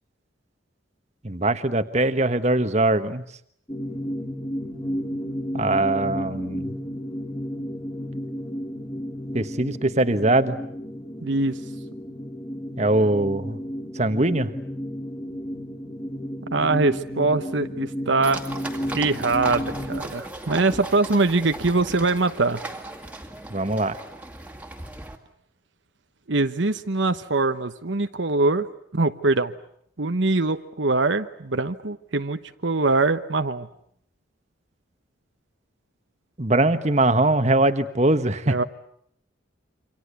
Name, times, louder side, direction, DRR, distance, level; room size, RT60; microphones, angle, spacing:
voice 1, 1.2-3.2 5.5-6.7 9.3-10.6 12.8-13.6 13.9-14.5 23.5-24.0 36.4-38.6, right 2 dB, 35° right, 10 dB, 1.4 m, -22 dB
sound 1, 3.7-20.0, equal, 20° left, 2.9 m, -33 dB
voice 2, 11.2-11.6 16.5-18.4 18.9-22.6 26.3-28.7 28.9-29.5 30.0-33.7 38.5-38.6, right 3 dB, 70° right, 9 dB, 1.1 m, -23 dB
sound 2, 18.2-25.2, right 2 dB, 5° right, 2.2 m, -37 dB
28.0 x 25.5 x 8.3 m, 0.68 s
head